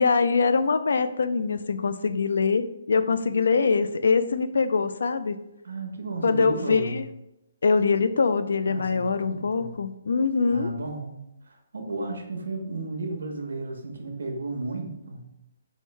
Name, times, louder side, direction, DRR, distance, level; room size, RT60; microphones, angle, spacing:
voice 1, 0.0-5.4 6.2-7.1 7.6-10.7, left 4 dB, 75° left, 12 dB, 0.3 m, -23 dB
voice 2, 5.6-7.0 8.7-9.7 10.5-15.2, right 2 dB, 90° right, 3 dB, 0.9 m, -34 dB
4.7 x 2.7 x 3.2 m, 0.88 s
hypercardioid pair, 165°, 0 cm